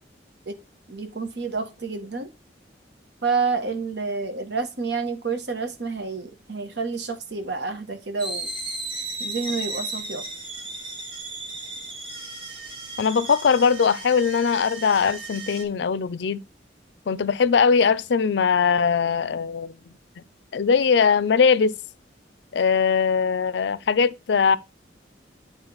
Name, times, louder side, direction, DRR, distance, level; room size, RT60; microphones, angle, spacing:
voice 1, 0.9-2.3 3.2-8.5 9.2-10.2, right 4 dB, 65° right, 1.2 m, -29 dB
sound 1, 8.2-15.6, right 2 dB, 30° right, 1.8 m, -35 dB
voice 2, 13.0-16.4 17.1-19.7 20.5-21.8 22.5-24.6, left 6 dB, 65° left, 0.4 m, -20 dB
9.6 x 3.7 x 3.9 m
head